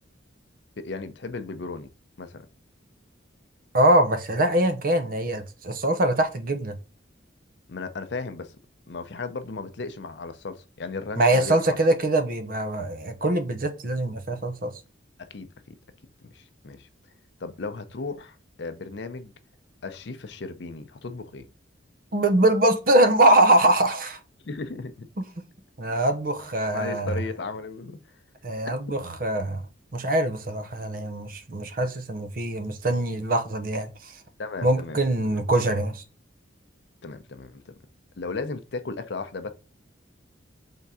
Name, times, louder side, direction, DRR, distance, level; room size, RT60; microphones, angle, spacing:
voice 1, 0.8-1.9 2.2-2.5 7.7-8.5 8.9-11.8 15.2-15.8 16.2-16.9 17.4-19.3 19.8-21.5 24.4-25.1 26.7-28.0 34.4-35.0 35.2-35.4 37.0-37.7 38.2-39.5, left 3 dB, 65° left, 0.6 m, -35 dB
voice 2, 3.7-6.7 11.2-14.7 22.1-24.2 25.2-25.3 25.8-27.1 28.4-29.6 29.9-34.2 34.6-36.0, right 1 dB, 45° right, 0.7 m, -23 dB
3.7 x 3.5 x 4.1 m
head